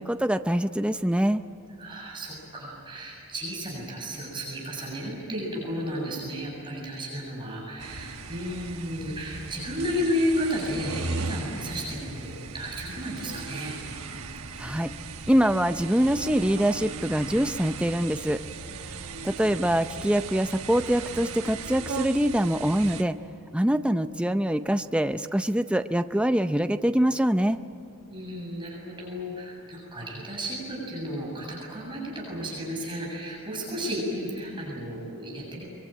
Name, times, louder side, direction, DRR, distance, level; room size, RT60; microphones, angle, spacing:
voice 1, 0.0-1.4 14.6-14.9 15.3-18.4 19.2-23.2 23.5-27.6, equal, 5° right, 9 dB, 0.5 m, -24 dB
voice 2, 1.8-13.8 28.1-35.7, equal, 20° right, -3 dB, 7.5 m, -33 dB
sound 1, 7.8-23.0, right 4 dB, 85° right, 1.3 m, -37 dB
24.0 x 23.5 x 9.2 m, 2.7 s
head